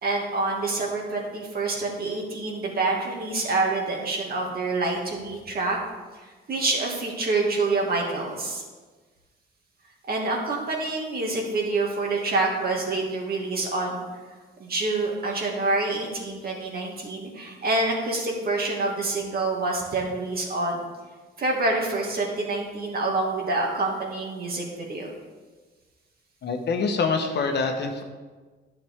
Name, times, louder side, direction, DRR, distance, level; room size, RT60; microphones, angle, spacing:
voice 1, 0.0-5.8 6.2-8.6 10.1-14.0 14.6-20.8 21.4-25.1, right 3 dB, 50° right, -1 dB, 2.2 m, -27 dB
voice 2, 26.4-28.0, left 4 dB, 60° left, 4 dB, 1.2 m, -25 dB
10.5 x 7.1 x 3.6 m, 1.3 s
cardioid pair, 90°, 20 cm